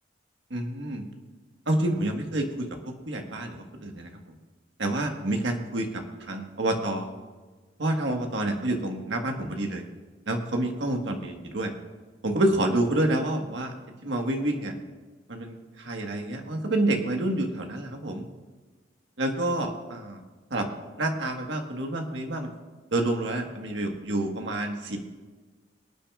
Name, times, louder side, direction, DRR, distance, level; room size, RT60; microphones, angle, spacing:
voice 1, 0.5-1.0 1.7-4.1 4.8-7.1 7.8-9.8 10.3-11.7 12.2-13.7 14.0-14.7 15.3-18.3 19.2-20.2 20.5-20.7 21.0-22.5 22.9-25.0, right 1 dB, 85° right, 3 dB, 1.5 m, -28 dB
24.5 x 9.1 x 2.4 m, 1.3 s
head